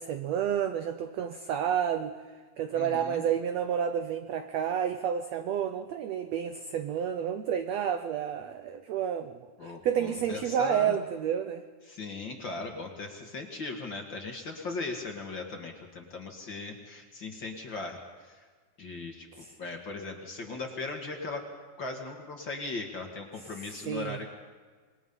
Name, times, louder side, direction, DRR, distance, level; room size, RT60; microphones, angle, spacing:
voice 1, 0.0-2.2 2.6-11.6 19.4-19.5 23.8-24.2, right 9 dB, 75° right, 9 dB, 1.6 m, -30 dB
voice 2, 2.7-3.2 9.6-11.0 11.9-18.5 18.8-19.3 19.6-21.5 21.8-24.3, left 3 dB, 40° left, 2 dB, 2.1 m, -38 dB
27.0 x 21.5 x 5.5 m, 1.5 s
omnidirectional pair, 4.0 m